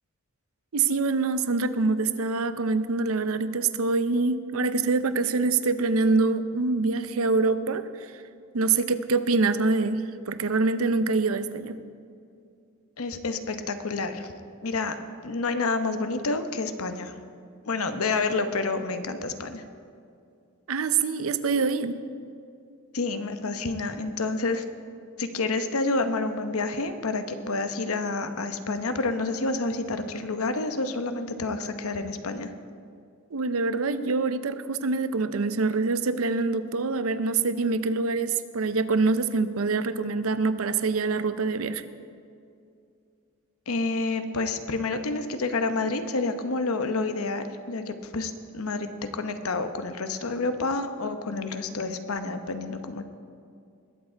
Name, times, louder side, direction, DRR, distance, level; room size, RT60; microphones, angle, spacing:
voice 1, 0.7-7.8 8.5-11.8 20.7-22.0 33.3-41.8, right 3 dB, 75° right, 12 dB, 0.6 m, -25 dB
voice 2, 13.0-14.3 14.6-15.0 15.2-17.2 17.7-19.6 22.9-24.6 25.2-32.5 43.7-53.0, left 3 dB, 90° left, 8 dB, 0.9 m, -29 dB
20.5 x 8.1 x 4.5 m, 2.4 s
head